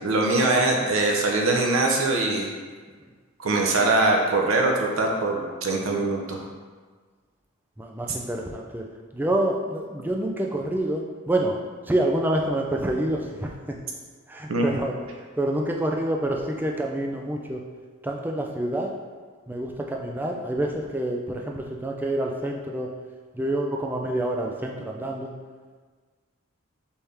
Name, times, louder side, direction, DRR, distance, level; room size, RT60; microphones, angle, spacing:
voice 1, 0.0-2.5 3.4-6.4 14.5-14.6, right 2 dB, 80° right, 0 dB, 0.7 m, -22 dB
voice 2, 7.8-8.9 9.1-11.6 11.9-13.5 14.3-14.9 15.4-17.6 18.0-18.9 19.5-22.9 23.3-25.3, right 1 dB, 10° right, 0 dB, 0.3 m, -27 dB
4.4 x 3.4 x 3.3 m, 1.5 s
head